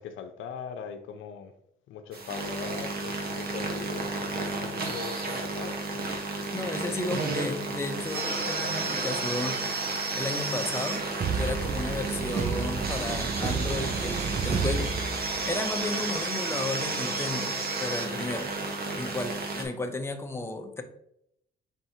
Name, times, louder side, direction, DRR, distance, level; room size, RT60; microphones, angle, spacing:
voice 1, 0.0-1.5 1.9-6.1, left 7 dB, 80° left, 0.6 m, -41 dB
sound 1, 2.1-19.6, right 3 dB, 50° right, 1.2 m, -32 dB
voice 2, 6.5-9.6 10.1-11.0 11.3-14.9 15.5-18.6 18.9-20.8, left 2 dB, 10° left, 0.6 m, -33 dB
sound 2, 11.2-15.7, right 5 dB, 35° right, 0.4 m, -31 dB
4.4 x 4.2 x 2.7 m
cardioid pair, 90°, 20 cm